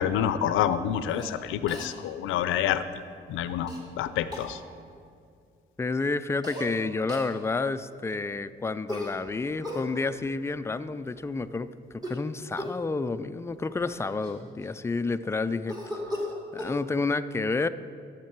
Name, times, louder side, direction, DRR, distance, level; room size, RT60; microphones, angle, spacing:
voice 1, 0.0-2.8 3.3-3.7 4.0-4.6, left 10 dB, 85° left, 13 dB, 0.5 m, -27 dB
Cough, 1.1-1.3 1.7-1.9 3.7-3.8 4.3-4.5 6.4-6.7 7.1-7.3 8.9-9.9 11.9-12.3 12.6-12.9 13.5-13.6 13.9-14.9 15.7-16.8, left 1 dB, 20° right, 2.1 m, -36 dB
voice 2, 5.8-15.8 16.1-16.3 16.5-17.7, left 3 dB, 15° left, 11 dB, 0.3 m, -30 dB
12.5 x 7.4 x 4.5 m, 2.3 s
cardioid pair, 90°, 20 cm